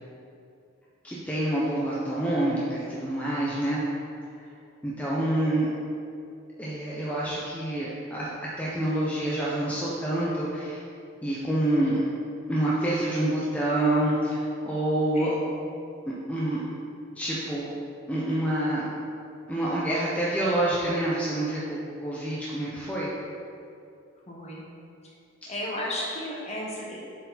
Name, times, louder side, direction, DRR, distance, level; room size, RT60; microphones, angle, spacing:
voice 1, 1.0-3.8 4.8-5.7 6.6-10.8 11.2-12.0 12.5-15.3 16.1-16.6 17.2-17.7 18.1-18.8 19.5-23.1, right 1 dB, 5° left, -7 dB, 0.7 m, -27 dB
voice 2, 15.1-15.5 24.3-24.6 25.5-27.0, left 1 dB, 35° left, -4 dB, 1.3 m, -34 dB
7.6 x 4.6 x 4.1 m, 2.6 s
head